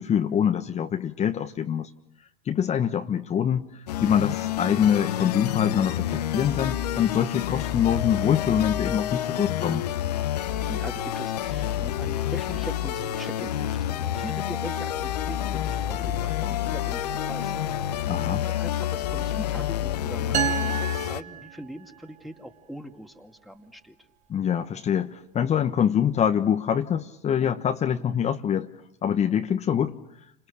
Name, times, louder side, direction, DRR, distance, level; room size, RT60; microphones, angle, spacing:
voice 1, 0.0-1.9 2.4-9.8 18.0-18.4 24.3-28.7 29.0-30.0, left 8 dB, 35° left, 6 dB, 1.3 m, -25 dB
sound 1, 3.9-21.2, left 11 dB, 80° left, 1.1 m, -28 dB
voice 2, 10.7-24.0, equal, ahead, 4 dB, 2.4 m, -41 dB
sound 2, 20.3-22.1, right 9 dB, 35° right, 2.6 m, -30 dB
29.5 x 26.5 x 6.7 m, 0.77 s
hypercardioid pair, 85°, 20 cm